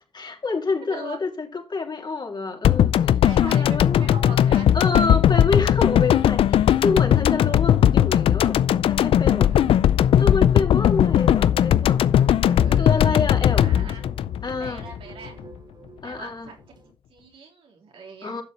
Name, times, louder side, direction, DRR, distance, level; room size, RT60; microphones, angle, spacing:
voice 1, 0.1-4.1 4.7-8.6 8.9-9.5 10.2-12.0 12.8-13.9 14.4-14.8 16.0-16.5 18.2-18.4, left 4 dB, 55° left, 3.6 m, -28 dB
sound 1, 2.6-15.0 15.3-15.4, left 10 dB, 90° left, 0.4 m, -18 dB
voice 2, 3.2-4.8 9.4-9.9 12.4-13.1 13.5-14.1 14.6-15.4 16.0-16.6 16.8-18.4, right 4 dB, 85° right, 3.2 m, -42 dB
sound 2, 10.9-16.9, right 2 dB, 55° right, 3.5 m, -49 dB
11.5 x 6.8 x 4.4 m
cardioid pair, 50°, 9 cm